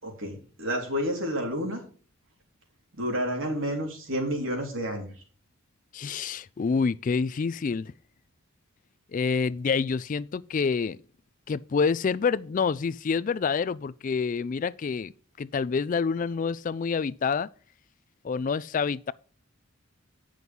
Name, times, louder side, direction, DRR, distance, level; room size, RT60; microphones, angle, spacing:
voice 1, 0.0-1.8 3.0-5.1, equal, 65° right, 3.6 m, -30 dB
voice 2, 5.9-7.9 9.1-11.0 11.5-15.1 15.4-17.5 18.2-19.1, left 5 dB, 40° left, 0.3 m, -27 dB
9.4 x 6.3 x 5.3 m
head